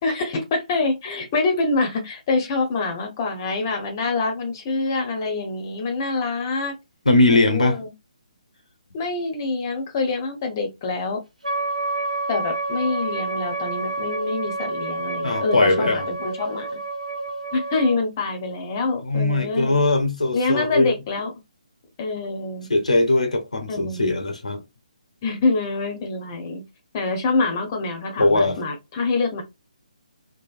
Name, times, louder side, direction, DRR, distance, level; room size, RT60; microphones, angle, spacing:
voice 1, 0.0-6.7 7.3-7.9 8.9-11.2 12.3-16.8 17.5-19.7 20.3-21.3 22.0-22.7 23.7-24.2 25.2-26.6 26.9-29.4, left 3 dB, 30° left, 0.7 m, -25 dB
voice 2, 7.1-7.8 15.2-16.1 19.0-21.0 22.7-24.6 28.2-28.6, left 2 dB, 70° left, 0.7 m, -20 dB
Wind instrument woodwind instrument, 11.4-18.0, right 2 dB, 80° right, 0.8 m, -29 dB
3.1 x 2.0 x 2.4 m
figure-of-eight pair, 140°, 4 cm